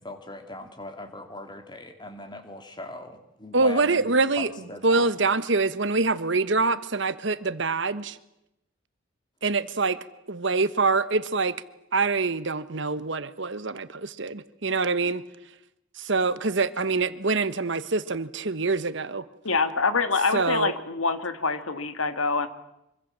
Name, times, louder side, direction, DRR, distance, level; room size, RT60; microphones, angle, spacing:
voice 1, 0.0-4.1 4.4-5.1, left 1 dB, 20° left, 6 dB, 2.7 m, -40 dB
voice 2, 3.5-4.5 4.8-8.2 9.4-10.0 10.3-11.6 11.9-15.2 15.9-19.2 20.3-20.7, right 3 dB, 60° right, 13 dB, 1.2 m, -25 dB
voice 3, 19.5-22.5, left 4 dB, 80° left, 10 dB, 2.0 m, -25 dB
25.0 x 24.5 x 7.5 m, 0.86 s
head